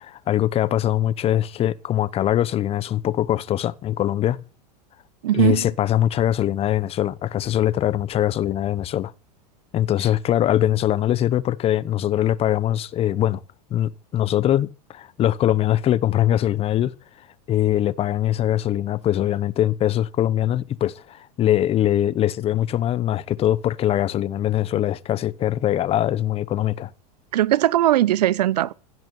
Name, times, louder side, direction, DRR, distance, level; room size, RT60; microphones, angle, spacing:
voice 1, 0.0-4.4 5.3-9.1 9.7-13.4 13.7-16.9 17.5-26.9, left 12 dB, 30° left, 0.8 m, -22 dB
voice 2, 5.2-5.6 27.3-28.7, right 13 dB, 80° right, 0.8 m, -19 dB
16.5 x 6.0 x 9.2 m
hypercardioid pair, 120°, 20 cm